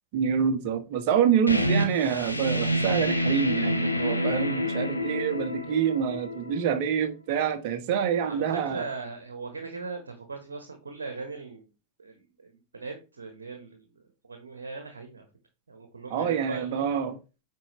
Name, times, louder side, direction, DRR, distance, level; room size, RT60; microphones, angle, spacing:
voice 1, 0.1-8.8 16.1-17.2, right 8 dB, 45° right, 1.3 m, -26 dB
sound 1, 1.5-6.9, equal, 90° left, 1.0 m, -28 dB
voice 2, 8.2-11.7 12.0-15.2 15.7-16.8, right 4 dB, 70° right, 1.3 m, -39 dB
9.0 x 4.7 x 3.2 m
figure-of-eight pair, 90°, 0 cm